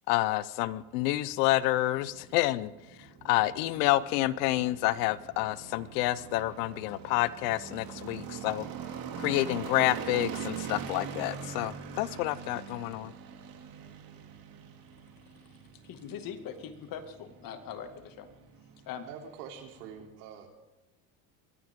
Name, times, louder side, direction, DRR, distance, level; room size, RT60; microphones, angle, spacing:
voice 1, 0.1-2.7 3.2-8.7 9.2-13.1, left 17 dB, 75° left, 18 dB, 0.9 m, -28 dB
sound 1, 0.7-20.1, right 7 dB, 50° right, 2.8 m, -43 dB
voice 2, 15.8-18.3 18.9-19.1, left 8 dB, 45° left, 7 dB, 2.2 m, -41 dB
voice 3, 19.1-20.6, right 7 dB, 90° right, 2 dB, 3.4 m, -45 dB
23.0 x 16.0 x 3.7 m, 1.1 s
supercardioid pair, 125°, 46 cm